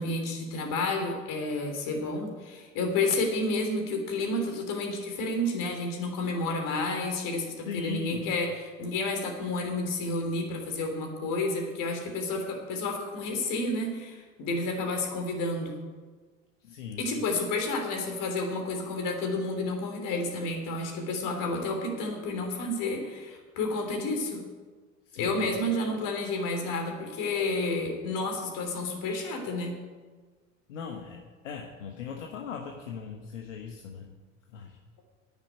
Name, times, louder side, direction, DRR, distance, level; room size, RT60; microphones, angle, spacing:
voice 1, 0.0-15.7 17.0-24.4 25.1-29.7, left 2 dB, 60° left, 3 dB, 3.4 m, -30 dB
voice 2, 7.7-8.3 16.6-17.0 25.1-25.4 30.7-34.1 34.5-34.8, left 6 dB, 80° left, 3 dB, 1.2 m, -39 dB
10.0 x 7.3 x 9.2 m, 1.4 s
hypercardioid pair, 70°, 37 cm